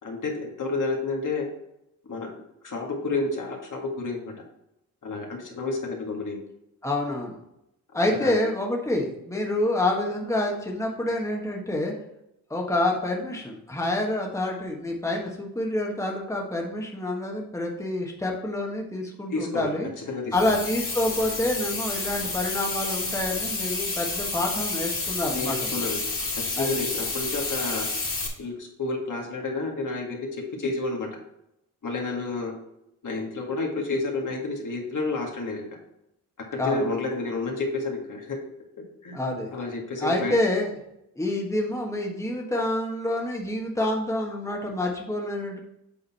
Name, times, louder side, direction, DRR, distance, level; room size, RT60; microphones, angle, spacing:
voice 1, 0.0-1.5 2.1-2.3 2.6-4.3 5.0-6.4 8.0-8.4 19.3-19.7 20.0-20.6 25.3-26.0 26.3-27.9 28.4-31.1 31.8-32.5 33.0-35.7 36.5-38.4 39.0-39.2 39.5-40.3, left 3 dB, 55° left, 0 dB, 1.9 m, -30 dB
voice 2, 6.8-7.4 7.9-11.9 12.5-19.9 20.3-25.6 26.6-26.8 36.6-36.9 39.1-39.5 40.0-40.7 41.1-45.6, left 1 dB, 10° left, 0 dB, 1.5 m, -27 dB
sound 1, 20.3-28.3, left 3 dB, 35° left, 2.4 m, -30 dB
8.3 x 3.8 x 4.3 m, 0.81 s
supercardioid pair, 55°, 38 cm